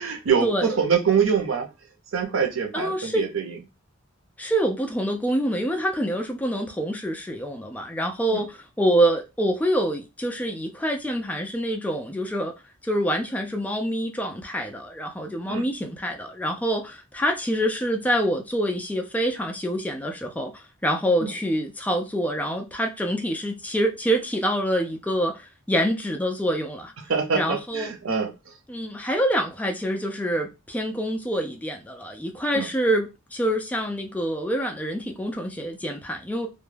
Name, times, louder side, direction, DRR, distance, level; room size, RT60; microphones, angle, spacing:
voice 1, 0.0-1.7 2.1-3.6 8.3-8.4 15.5-15.6 21.2-21.3 27.1-28.5 32.5-32.7, right 6 dB, 85° right, 0.6 m, -24 dB
voice 2, 2.7-3.3 4.4-12.5 12.8-26.9 27.3-27.9 28.7-36.5, equal, 10° left, 0.3 m, -26 dB
2.2 x 2.0 x 3.2 m
head